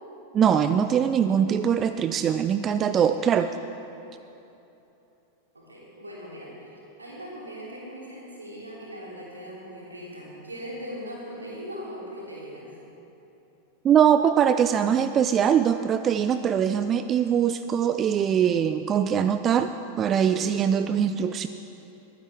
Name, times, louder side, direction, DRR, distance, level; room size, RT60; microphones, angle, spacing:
voice 1, 0.3-3.5 13.8-19.7 20.0-21.5, right 8 dB, 25° right, 10 dB, 0.3 m, -22 dB
voice 2, 5.5-12.7, equal, 80° right, -5 dB, 3.1 m, -40 dB
20.5 x 9.8 x 3.5 m, 2.9 s
figure-of-eight pair, 90°, 0 cm